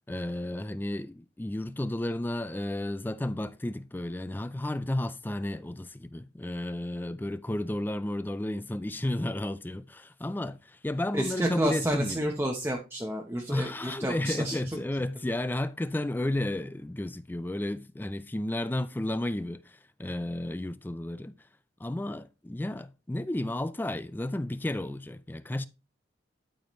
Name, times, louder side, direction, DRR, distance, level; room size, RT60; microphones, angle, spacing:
voice 1, 0.1-12.2 13.5-21.4 21.8-25.7, left 1 dB, 10° left, 0.3 m, -32 dB
voice 2, 11.1-14.8, right 1 dB, 15° right, 0.9 m, -30 dB
12.5 x 5.0 x 3.1 m
head